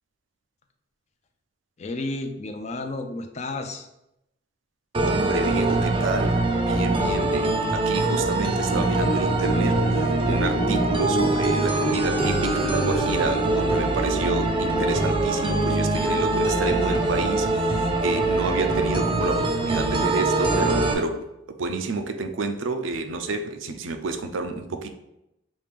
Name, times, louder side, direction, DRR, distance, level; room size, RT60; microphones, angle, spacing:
voice 1, 1.8-3.9, left 2 dB, 35° left, 6 dB, 0.4 m, -32 dB
sound 1, 4.9-20.9, right 2 dB, 25° right, 0.5 m, -23 dB
voice 2, 5.0-6.4 6.7-9.8 10.3-21.2 21.6-24.9, right 3 dB, 85° right, 7 dB, 0.5 m, -29 dB
sound 2, 8.5-16.9, right 1 dB, 80° left, 0.8 m, -31 dB
6.1 x 2.5 x 3.5 m, 0.87 s
head